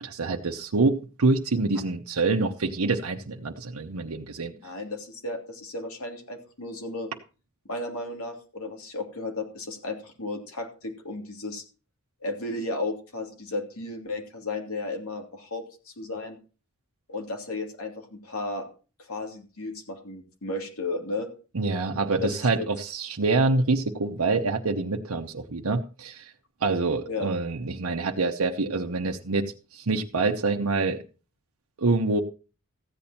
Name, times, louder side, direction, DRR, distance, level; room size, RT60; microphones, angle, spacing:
voice 1, 0.0-4.5 21.5-26.3 26.6-31.0 31.8-32.2, right 3 dB, 80° right, 2 dB, 0.9 m, -26 dB
voice 2, 4.6-7.1 7.7-11.6 12.2-16.4 17.1-18.6 19.1-21.3 22.2-22.4 27.1-27.3, left 2 dB, 80° left, 3 dB, 2.8 m, -34 dB
14.5 x 8.7 x 4.3 m, 0.35 s
head